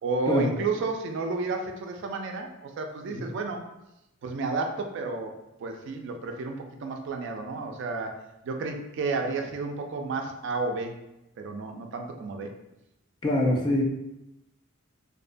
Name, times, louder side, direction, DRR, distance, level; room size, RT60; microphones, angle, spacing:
voice 1, 0.0-3.6 4.2-5.3 5.6-8.2 8.4-11.0 11.4-12.5, right 3 dB, 60° right, 4 dB, 0.3 m, -31 dB
voice 2, 13.2-13.8, left 1 dB, 20° left, -1 dB, 0.3 m, -24 dB
2.6 x 2.1 x 2.5 m, 0.89 s
head